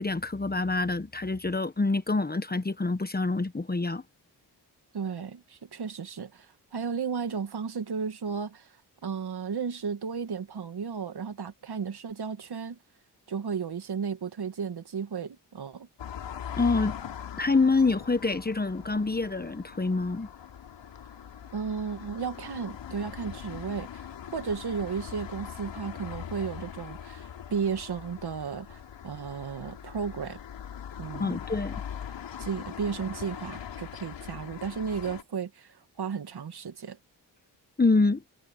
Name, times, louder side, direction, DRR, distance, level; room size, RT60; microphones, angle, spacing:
voice 1, 0.0-4.0 16.6-17.0 17.4-20.3 31.2-31.7 37.8-38.2, left 3 dB, 20° left, 1.2 m, -26 dB
voice 2, 4.9-6.5 6.7-8.7 9.0-12.8 13.3-15.9 21.5-30.4 31.0-31.4 32.4-37.0, right 6 dB, 60° right, 2.4 m, -34 dB
sound 1, 16.0-35.2, left 9 dB, 80° left, 3.6 m, -41 dB
cardioid pair, 55°, 43 cm